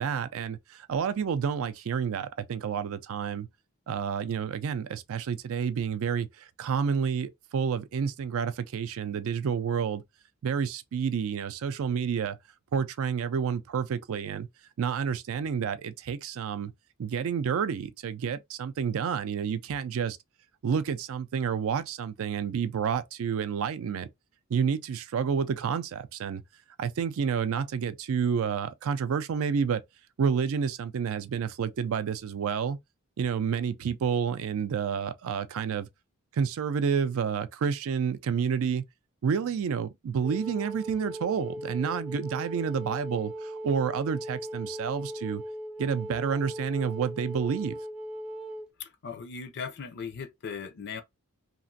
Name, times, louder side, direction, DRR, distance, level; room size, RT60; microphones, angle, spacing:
voice 1, 0.0-3.5 3.9-10.0 10.4-12.4 12.7-14.5 14.8-16.7 17.0-20.2 20.6-24.1 24.5-26.4 26.8-29.8 30.2-32.8 33.2-35.9 36.3-38.9 39.2-45.4 45.8-47.8, right 7 dB, 65° right, 0.4 m, -29 dB
Wind instrument woodwind instrument, 40.2-48.7, equal, 5° right, 0.5 m, -38 dB
voice 2, 48.8-51.0, left 6 dB, 50° left, 0.4 m, -38 dB
2.9 x 2.5 x 2.6 m
head